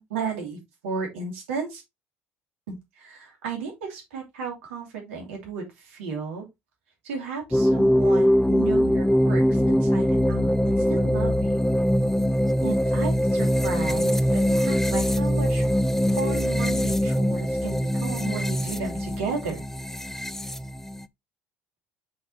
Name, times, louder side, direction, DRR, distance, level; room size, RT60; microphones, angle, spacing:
voice 1, 0.0-1.8 2.7-6.5 7.0-11.6 12.6-15.7 16.1-19.6 19.9-20.2, right 5 dB, 75° right, 2.8 m, -34 dB
sound 1, 7.5-21.0, equal, 5° left, 0.5 m, -22 dB
7.4 x 5.7 x 2.7 m
figure-of-eight pair, 65°, 7 cm